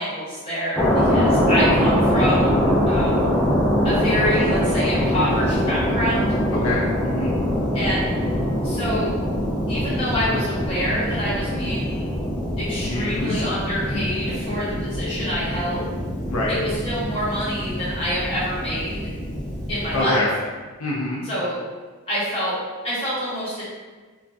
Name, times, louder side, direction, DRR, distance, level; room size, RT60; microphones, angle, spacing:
voice 1, 0.0-2.5 2.9-3.3 3.8-6.3 7.7-8.0 8.6-9.1 9.7-12.1 12.6-15.9 16.5-19.0 19.7-20.3 21.2-21.6 22.1-22.5 22.8-23.6, equal, 25° left, -10 dB, 1.0 m, -26 dB
sound 1, 0.8-20.0, equal, 5° left, 0.4 m, -23 dB
voice 2, 6.5-7.3 12.8-13.4 13.9-14.0 16.2-16.6 19.9-20.3 20.8-21.2, left 2 dB, 75° left, -4 dB, 0.5 m, -26 dB
3.3 x 2.0 x 2.5 m, 1.4 s
head